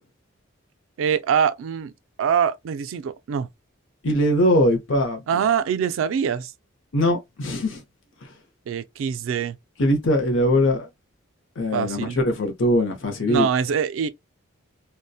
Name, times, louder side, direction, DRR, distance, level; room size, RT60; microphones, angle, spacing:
voice 1, 1.0-1.9 2.2-3.5 5.3-6.5 8.7-9.6 11.7-12.2 13.3-14.1, right 7 dB, 70° right, 0.3 m, -24 dB
voice 2, 4.0-5.4 6.9-7.8 8.2-8.3 9.8-10.9 11.6-13.5, left 1 dB, 65° left, 0.6 m, -21 dB
2.6 x 2.1 x 2.3 m
head